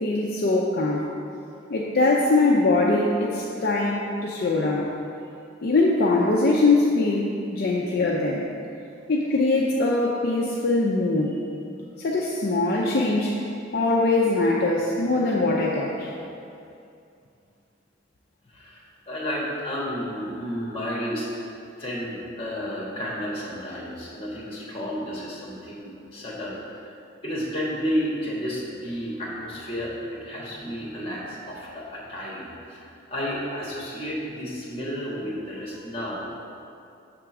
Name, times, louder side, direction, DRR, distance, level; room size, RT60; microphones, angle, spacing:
voice 1, 0.0-1.1 1.7-4.9 5.6-8.4 9.1-11.4 12.0-13.3 13.7-16.1, left 2 dB, 50° left, -3 dB, 0.5 m, -22 dB
voice 2, 18.5-21.3 21.8-26.9 27.2-36.3, equal, 30° left, -5 dB, 1.5 m, -32 dB
6.7 x 3.7 x 6.0 m, 2.6 s
head